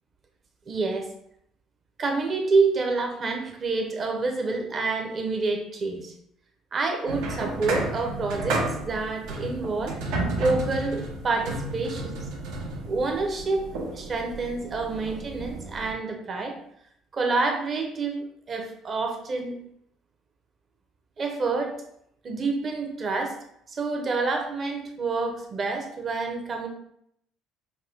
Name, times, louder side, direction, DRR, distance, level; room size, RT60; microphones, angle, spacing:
voice 1, 0.7-1.1 2.0-6.1 6.7-10.0 10.4-12.2 12.9-13.7 13.9-16.5 17.1-19.6 21.2-21.8 22.2-23.4 23.7-26.7, right 3 dB, 30° right, 3 dB, 0.6 m, -28 dB
sound 1, 7.1-15.9, right 2 dB, 85° right, 0.9 m, -32 dB
5.1 x 2.2 x 3.3 m, 0.72 s
cardioid pair, 150°, 0 cm